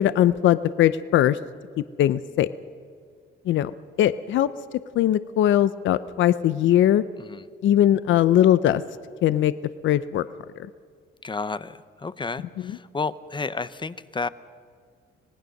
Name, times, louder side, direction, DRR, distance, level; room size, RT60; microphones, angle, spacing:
voice 1, 0.0-1.4 2.0-2.5 3.5-3.7 4.0-4.5 5.0-7.0 7.6-8.8 9.2-9.5 9.8-10.3, left 12 dB, 75° left, 15 dB, 0.6 m, -20 dB
voice 2, 11.2-14.3, left 4 dB, 25° left, 15 dB, 0.8 m, -31 dB
25.5 x 19.0 x 6.5 m, 2.1 s
cardioid pair, 90°, 20 cm